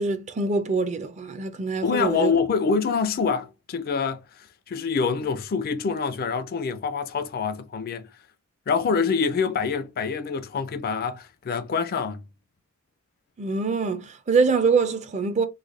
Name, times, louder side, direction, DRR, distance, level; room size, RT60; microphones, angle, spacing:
voice 1, 0.0-2.3 13.4-15.4, right 4 dB, 35° right, 0.5 m, -24 dB
voice 2, 1.8-4.2 4.7-8.1 8.7-12.3, left 5 dB, 45° left, 0.4 m, -25 dB
3.2 x 2.2 x 3.6 m
head